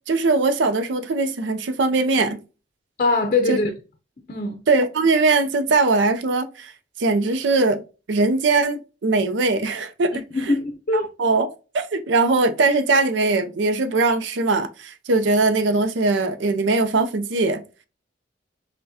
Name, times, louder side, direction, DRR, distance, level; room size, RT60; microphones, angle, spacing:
voice 1, 0.1-2.4 3.5-3.6 4.7-6.7 7.0-7.8 8.1-10.6 10.9-11.5 11.7-17.6, right 3 dB, 85° right, 0.5 m, -21 dB
voice 2, 3.0-3.7 4.3-4.6 10.3-11.1, left 3 dB, 45° left, 0.5 m, -22 dB
5.6 x 2.2 x 2.7 m
head